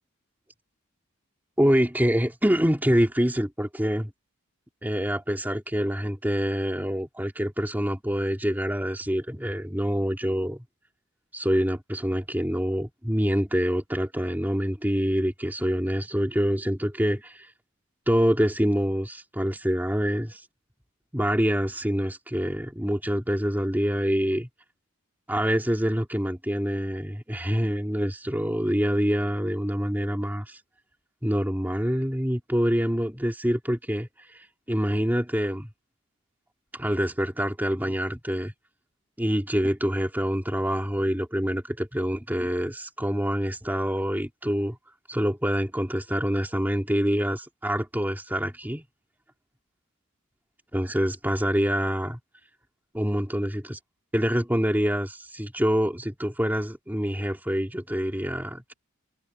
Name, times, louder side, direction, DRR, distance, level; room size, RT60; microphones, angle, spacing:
voice 1, 1.6-4.1 4.8-10.6 11.3-17.5 18.1-20.4 21.1-24.5 25.3-30.6 31.2-35.7 36.7-38.5 39.2-44.8 45.1-48.8 50.7-52.2 52.9-53.8 54.1-58.7, equal, 10° right, 3.0 m, -26 dB
head